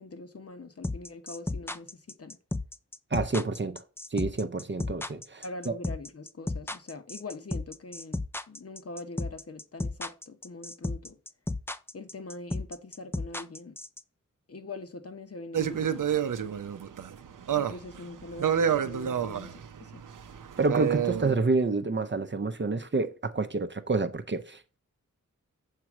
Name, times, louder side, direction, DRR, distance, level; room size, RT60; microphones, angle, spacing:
voice 1, 0.0-2.4 5.4-11.2 11.9-13.8 14.5-16.1 17.5-20.0, left 2 dB, 45° left, 0.9 m, -43 dB
sound 1, 0.8-14.0, left 2 dB, 10° left, 0.3 m, -33 dB
voice 2, 3.1-3.8 4.1-5.7 20.6-24.6, right 3 dB, 35° right, 0.6 m, -28 dB
sound 2, 15.5-21.3, right 8 dB, 75° right, 0.6 m, -29 dB
7.4 x 3.0 x 5.9 m
wide cardioid pair, 60°, 32 cm